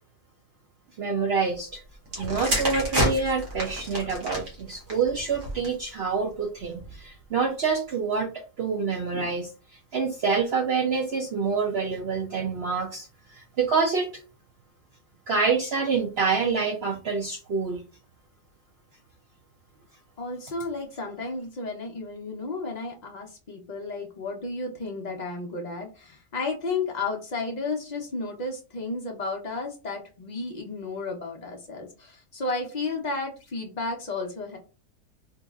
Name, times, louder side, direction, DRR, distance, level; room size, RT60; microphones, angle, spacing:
voice 1, 1.0-1.8 2.2-14.1 15.3-17.8, right 5 dB, 70° right, 2 dB, 0.6 m, -27 dB
sound 1, 2.1-5.9 6.7-7.0, right 1 dB, 50° right, 1.3 m, -29 dB
voice 2, 20.2-34.6, left 3 dB, 80° left, 1 dB, 0.3 m, -33 dB
4.0 x 2.8 x 2.3 m, 0.34 s
omnidirectional pair, 1.7 m